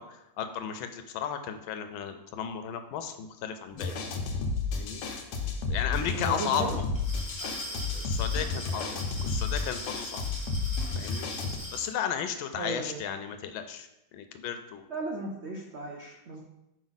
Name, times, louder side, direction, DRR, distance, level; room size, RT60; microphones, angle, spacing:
voice 1, 0.4-3.9 4.7-5.0 5.7-6.8 7.4-10.2 11.0-11.3 11.7-14.9, left 8 dB, 85° left, 8 dB, 1.4 m, -34 dB
sound 1, 3.7-4.5 5.4-5.5 6.0-6.5 7.9-8.1 8.4-9.2, equal, ahead, 1.0 m, -49 dB
sound 2, 3.8-11.6, left 4 dB, 70° left, 1.4 m, -32 dB
voice 2, 6.1-6.8 12.6-13.0 14.9-16.4, right 2 dB, 85° right, 0 dB, 0.6 m, -35 dB
Glass, 6.9-11.9, equal, 15° left, 1.7 m, -41 dB
5.3 x 5.1 x 4.0 m, 0.88 s
omnidirectional pair, 2.1 m